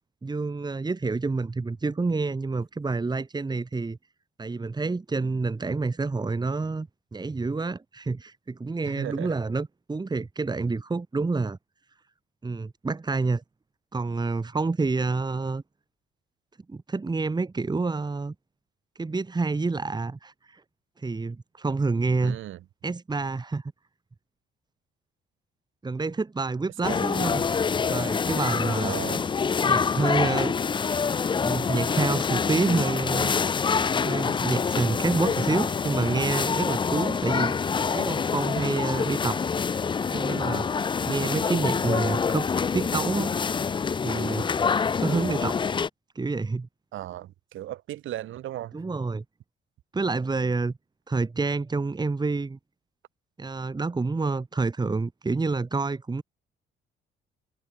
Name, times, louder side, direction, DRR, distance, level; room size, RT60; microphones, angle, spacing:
voice 1, 0.2-4.0 4.4-11.6 12.4-13.4 13.9-15.6 16.7-18.3 19.0-20.6 21.0-22.4 22.8-23.6 25.8-27.4 27.9-29.0 29.6-30.6 31.3-33.3 34.0-39.4 40.1-40.7 41.1-43.4 44.0-45.6 46.2-46.7 48.7-49.2 49.9-50.7 51.1-52.6 53.4-56.2, right 3 dB, 20° right, 1.7 m, -28 dB
voice 2, 8.8-9.3 22.2-22.6 26.9-27.1 28.8-29.2 46.9-48.7, right 13 dB, 80° right, 3.2 m, -36 dB
sound 1, 26.8-45.9, left 6 dB, 25° left, 0.4 m, -26 dB
cardioid pair, 90°, 20 cm